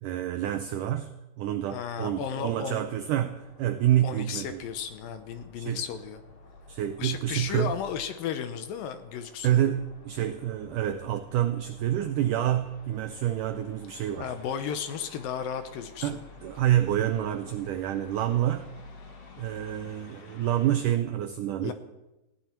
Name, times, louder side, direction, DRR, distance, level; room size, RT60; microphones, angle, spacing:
voice 1, 0.0-1.1 1.4-4.6 5.6-5.8 6.7-7.7 9.4-14.3 16.0-18.7 19.4-21.7, right 12 dB, 85° right, 9 dB, 1.8 m, -28 dB
voice 2, 1.7-2.8 4.0-6.2 7.0-9.6 14.2-16.2 21.6-21.7, left 8 dB, 75° left, 10 dB, 2.4 m, -34 dB
sound 1, 1.9-21.0, left 3 dB, 45° left, 2.5 m, -52 dB
20.0 x 16.0 x 4.5 m, 0.99 s
omnidirectional pair, 4.5 m